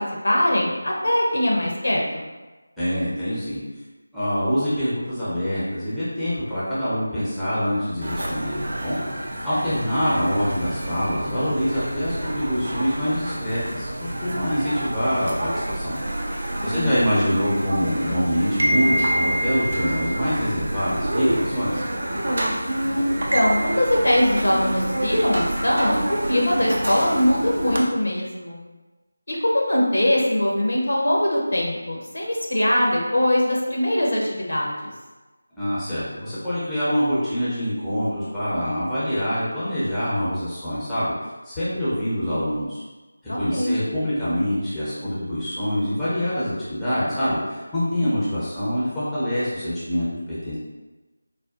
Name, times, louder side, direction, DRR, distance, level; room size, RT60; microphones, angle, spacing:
voice 1, 0.0-2.3 16.6-17.1 22.7-28.6 29.3-34.9 43.3-43.8, left 1 dB, 65° left, -2 dB, 0.8 m, -22 dB
voice 2, 2.8-3.6 4.1-9.0 9.4-15.9 16.3-21.8 35.6-41.1 41.4-42.8 43.4-50.6, equal, 5° left, -13 dB, 0.7 m, -25 dB
sound 1, 8.0-27.8, right 1 dB, 45° right, 0.5 m, -28 dB
4.0 x 2.2 x 2.4 m, 1.2 s
figure-of-eight pair, 165°, 0 cm